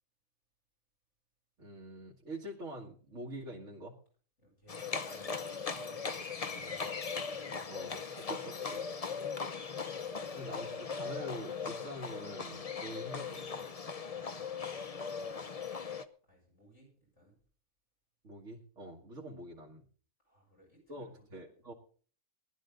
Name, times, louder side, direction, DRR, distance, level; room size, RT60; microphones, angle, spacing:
voice 1, 1.6-4.0 7.7-8.8 10.3-13.7 18.2-19.8 20.9-21.7, equal, 85° right, -2 dB, 2.1 m, -45 dB
voice 2, 4.4-6.9 14.0-15.5 15.8-17.4 20.2-21.2, equal, 80° left, -2 dB, 7.3 m, -60 dB
Livestock farm animals working animals, 4.7-16.0, left 5 dB, 35° left, 0.8 m, -39 dB
18.5 x 11.5 x 3.8 m, 0.42 s
omnidirectional pair, 1.2 m